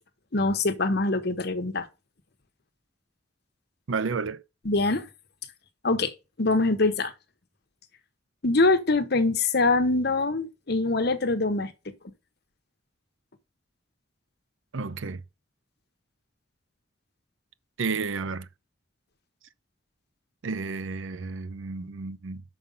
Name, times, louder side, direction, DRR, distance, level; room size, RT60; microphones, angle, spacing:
voice 1, 0.3-1.9 4.6-5.1 5.8-6.1 6.4-7.1 8.4-11.7, left 3 dB, 55° left, 1.0 m, -24 dB
voice 2, 3.9-4.4 14.7-15.2 17.8-18.5 20.4-22.4, right 4 dB, 85° right, 0.6 m, -31 dB
5.9 x 5.3 x 5.3 m
head